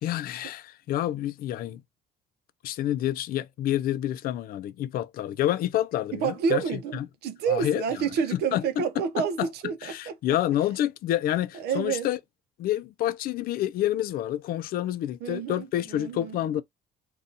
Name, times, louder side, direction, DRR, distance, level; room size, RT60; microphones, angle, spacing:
voice 1, 0.0-1.8 2.6-6.6 6.9-7.1 7.5-7.8 8.3-8.8 9.2-9.5 9.8-12.2 12.6-16.6, left 12 dB, 60° left, 0.4 m, -28 dB
voice 2, 6.1-10.2 11.5-12.1 15.2-16.4, right 6 dB, 75° right, 0.6 m, -29 dB
2.7 x 2.3 x 3.8 m
cardioid pair, 110°, 17 cm